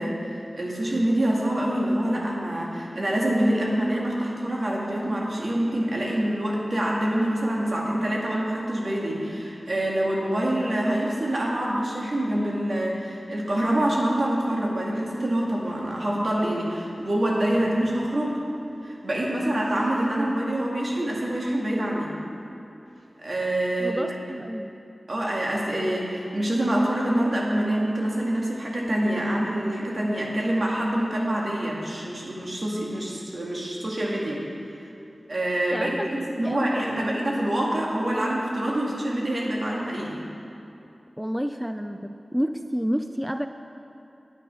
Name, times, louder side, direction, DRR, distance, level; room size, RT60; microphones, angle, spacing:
voice 1, 0.0-18.4 18.8-22.1 23.2-24.1 25.1-34.4 35.3-40.2, right 1 dB, 60° right, -3 dB, 2.0 m, -26 dB
voice 2, 23.8-24.8 35.7-37.1 41.2-43.5, equal, 5° right, 7 dB, 0.4 m, -30 dB
9.3 x 9.0 x 5.6 m, 2.7 s
cardioid pair, 40°, 0 cm